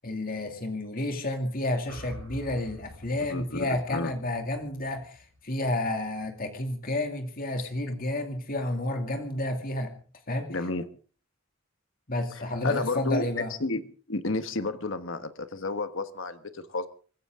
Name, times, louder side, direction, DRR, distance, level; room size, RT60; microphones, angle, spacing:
voice 1, 0.0-9.9 10.3-10.5 12.1-13.5, left 1 dB, 45° left, 4 dB, 2.5 m, -30 dB
sound 1, 1.9-6.1, left 1 dB, 90° right, 4.7 m, -47 dB
voice 2, 3.3-4.1 10.5-10.9 12.3-13.2 13.6-13.8 14.1-16.9, left 2 dB, 65° left, 10 dB, 1.4 m, -31 dB
24.5 x 15.5 x 3.7 m, 0.40 s
head